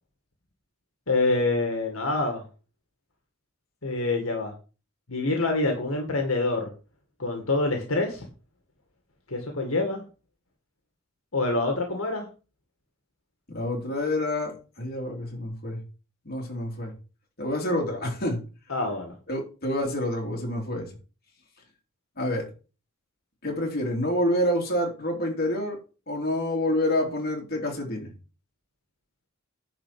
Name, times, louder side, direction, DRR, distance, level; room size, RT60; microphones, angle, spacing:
voice 1, 1.1-2.4 3.8-4.5 5.1-6.7 7.2-8.3 9.3-10.0 11.3-12.3 18.7-19.1, left 2 dB, 75° left, 3 dB, 2.0 m, -26 dB
voice 2, 13.5-15.8 16.2-16.9 17.4-18.4 19.3-20.9 22.2-22.5 23.4-25.8 26.1-28.1, left 1 dB, 45° left, 0 dB, 3.5 m, -28 dB
10.0 x 4.5 x 7.6 m, 0.35 s
head